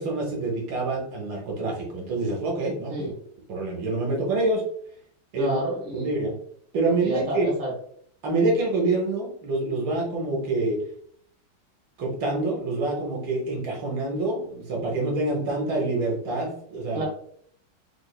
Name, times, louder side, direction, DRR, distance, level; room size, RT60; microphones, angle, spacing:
voice 1, 0.0-3.1 3.5-4.6 5.3-5.6 5.9-6.3 6.7-7.5 8.2-10.8 12.0-17.0, right 2 dB, 65° right, -1 dB, 1.4 m, -26 dB
voice 2, 5.3-6.1 7.0-7.7 16.9-17.0, right 1 dB, 5° right, -5 dB, 0.7 m, -30 dB
3.4 x 3.1 x 2.3 m, 0.62 s
omnidirectional pair, 2.4 m